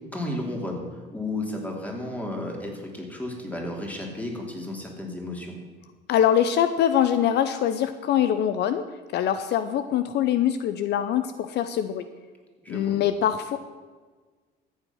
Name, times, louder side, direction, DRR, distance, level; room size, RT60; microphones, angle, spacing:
voice 1, 0.1-0.8 1.1-5.5 12.6-13.0, left 1 dB, 10° left, 1 dB, 2.8 m, -33 dB
voice 2, 6.1-8.8 9.1-12.0 12.7-13.6, left 10 dB, 65° left, 10 dB, 0.7 m, -23 dB
13.5 x 8.3 x 5.7 m, 1.4 s
cardioid pair, 115°, 19 cm